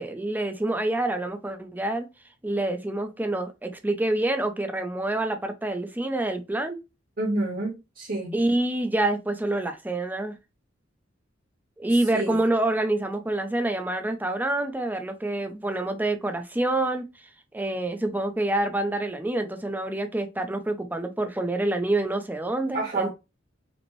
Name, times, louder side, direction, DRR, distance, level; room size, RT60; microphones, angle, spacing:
voice 1, 0.0-2.1 2.4-6.8 8.3-10.4 11.8-17.0 17.5-23.1, right 2 dB, 10° right, 0.6 m, -27 dB
voice 2, 7.2-8.3 11.9-12.4 22.7-23.1, right 2 dB, 50° right, 1.3 m, -29 dB
5.2 x 2.1 x 3.1 m
head